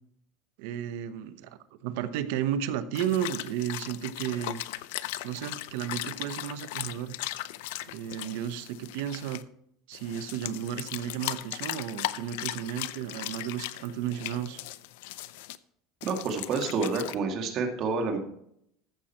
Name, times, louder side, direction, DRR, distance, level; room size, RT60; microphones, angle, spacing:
voice 1, 0.6-4.6 5.2-7.1 7.9-9.4 9.9-14.6, right 10 dB, 75° right, 11 dB, 1.0 m, -33 dB
sound 1, 2.9-9.4 9.9-15.6 16.0-17.2, left 16 dB, 80° left, 0.5 m, -38 dB
voice 2, 16.0-18.2, right 4 dB, 45° right, 3 dB, 2.2 m, -29 dB
14.5 x 6.5 x 4.4 m, 0.72 s
supercardioid pair, 140°, 0 cm